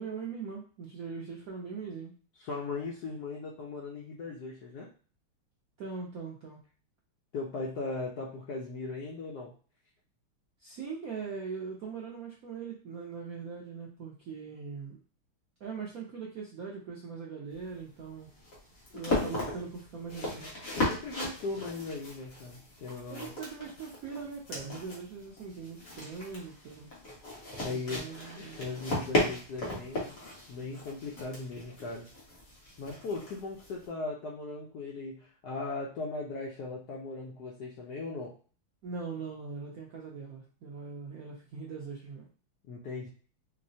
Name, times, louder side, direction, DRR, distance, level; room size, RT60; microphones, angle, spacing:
voice 1, 0.0-2.2 5.8-6.6 10.6-15.0 15.6-18.3 18.9-20.5 23.1-26.9 27.7-28.7 38.8-42.3, right 5 dB, 75° right, -3 dB, 0.8 m, -41 dB
voice 2, 2.4-4.9 7.3-9.5 18.9-19.3 20.7-23.3 27.6-28.1 28.4-30.2 30.5-32.1 32.8-38.3 42.7-43.1, left 3 dB, 75° left, -3 dB, 0.9 m, -38 dB
sound 1, 17.5-33.8, left 2 dB, 45° left, 1.4 m, -36 dB
4.6 x 2.1 x 2.6 m, 0.39 s
omnidirectional pair, 2.3 m